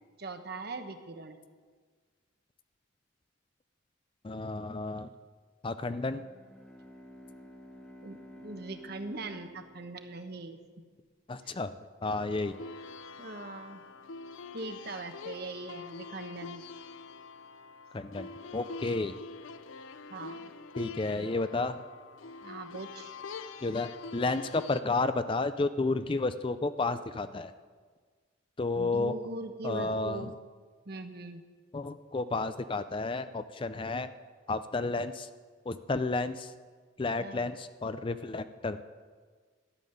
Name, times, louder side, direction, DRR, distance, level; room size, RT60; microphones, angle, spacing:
voice 1, 0.2-1.4 8.0-10.6 13.2-13.8 14.5-16.6 20.1-20.5 22.4-23.1 28.7-30.3 30.9-31.4 37.2-37.5, right 2 dB, 50° right, 7 dB, 1.1 m, -41 dB
voice 2, 4.2-5.1 5.6-6.2 11.3-11.7 12.0-12.6 17.9-19.1 20.8-21.8 23.6-27.5 28.6-29.1 29.6-30.3 31.7-34.1 34.5-35.3 35.7-36.5 37.0-38.8, left 3 dB, 25° left, 11 dB, 0.4 m, -31 dB
Bowed string instrument, 6.0-10.8, equal, 5° left, 1.3 m, -51 dB
sound 1, 12.0-24.8, left 4 dB, 80° left, 0.6 m, -45 dB
13.0 x 7.4 x 10.0 m, 1.5 s
head